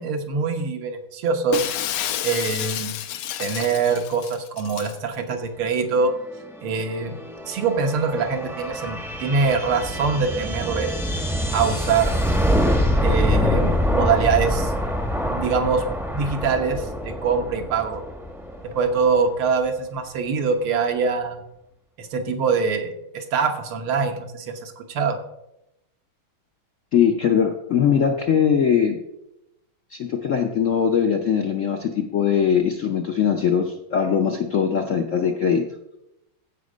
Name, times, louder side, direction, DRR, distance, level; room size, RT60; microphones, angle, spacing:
voice 1, 0.0-1.7 2.2-3.0 3.4-6.1 6.6-7.1 7.4-10.9 11.5-12.2 13.0-14.7 15.2-15.8 16.1-18.0 18.6-21.4 22.0-25.2, right 5 dB, 80° right, 5 dB, 2.0 m, -24 dB
Shatter, 1.5-5.0, left 11 dB, 90° left, 1.5 m, -30 dB
sound 1, 6.0-19.5, equal, ahead, 0.6 m, -25 dB
voice 2, 26.9-29.0 29.9-35.7, left 7 dB, 65° left, 4 dB, 0.7 m, -21 dB
15.0 x 5.2 x 5.0 m, 0.86 s
omnidirectional pair, 2.3 m